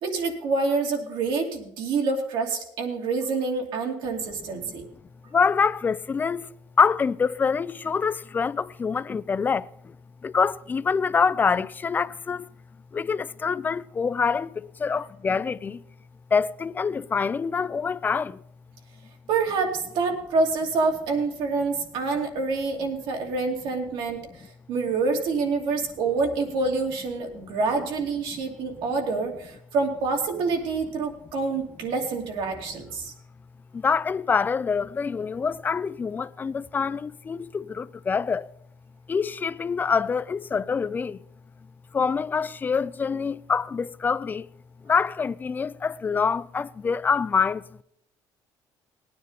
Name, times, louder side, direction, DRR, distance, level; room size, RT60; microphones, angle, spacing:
voice 1, 0.0-4.8 19.3-33.1, right 4 dB, 75° right, 2.8 m, -27 dB
voice 2, 5.3-6.5 6.8-10.0 10.2-12.5 12.9-15.8 16.3-18.4 28.3-28.4 33.7-38.5 39.1-41.2 41.9-44.5 44.8-47.8, left 5 dB, 20° left, 0.4 m, -25 dB
19.0 x 9.6 x 4.1 m
cardioid pair, 140°, 9 cm